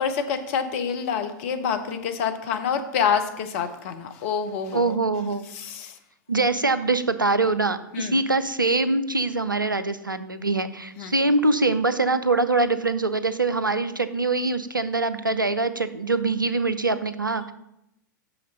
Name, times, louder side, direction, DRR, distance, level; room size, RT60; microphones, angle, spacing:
voice 1, 0.0-5.0 5.5-5.9 7.9-8.2 11.0-11.1, left 7 dB, 40° left, 8 dB, 0.8 m, -27 dB
voice 2, 4.7-5.5 6.3-17.5, right 3 dB, 85° right, 12 dB, 0.5 m, -23 dB
6.3 x 5.8 x 5.4 m, 0.83 s
figure-of-eight pair, 100°, 11 cm